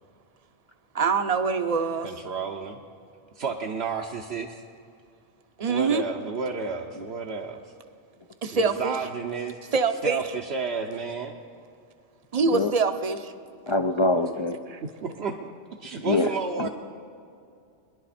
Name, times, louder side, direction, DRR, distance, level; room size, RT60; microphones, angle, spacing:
voice 1, 0.9-2.1 5.6-6.0 8.4-9.0 9.7-10.2 12.3-13.3 14.7-14.8, right 5 dB, 40° right, 9 dB, 0.7 m, -24 dB
voice 2, 2.0-2.8 3.4-4.6 5.7-7.7 8.5-9.6 10.0-11.4 14.8-16.7, right 5 dB, 70° right, 0 dB, 1.0 m, -32 dB
voice 3, 13.7-14.6 16.0-16.3 16.6-16.7, left 2 dB, 45° left, 7 dB, 0.4 m, -24 dB
22.0 x 11.0 x 4.2 m, 2.4 s
omnidirectional pair, 1.1 m